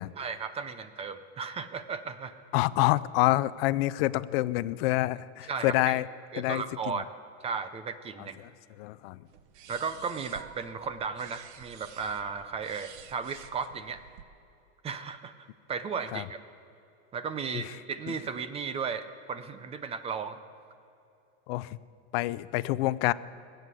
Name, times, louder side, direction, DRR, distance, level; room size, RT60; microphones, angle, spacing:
voice 1, 0.2-2.4 5.5-6.0 6.3-7.1 7.4-8.4 9.7-14.0 14.8-15.3 15.7-16.4 17.1-20.4, right 5 dB, 15° right, 12 dB, 0.5 m, -35 dB
voice 2, 2.5-6.1 6.4-7.0 8.2-8.5 8.8-9.2 16.1-16.3 17.5-17.8 21.5-21.8 22.1-23.1, left 18 dB, 55° left, 17 dB, 0.5 m, -27 dB
sound 1, 9.3-14.2, right 9 dB, 65° right, 1.0 m, -50 dB
20.5 x 7.9 x 8.2 m, 2.6 s
supercardioid pair, 145°, 37 cm